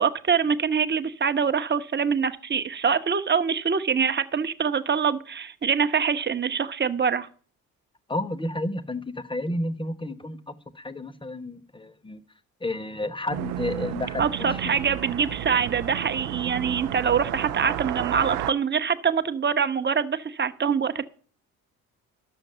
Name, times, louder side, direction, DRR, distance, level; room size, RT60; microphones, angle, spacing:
voice 1, 0.0-7.3 14.2-21.0, right 6 dB, 25° right, 1.0 m, -24 dB
voice 2, 8.1-12.2 12.6-14.6, left 1 dB, 10° left, 1.1 m, -31 dB
sound 1, 13.3-18.5, right 12 dB, 60° right, 0.7 m, -32 dB
11.0 x 7.0 x 6.7 m
figure-of-eight pair, 50°, 43 cm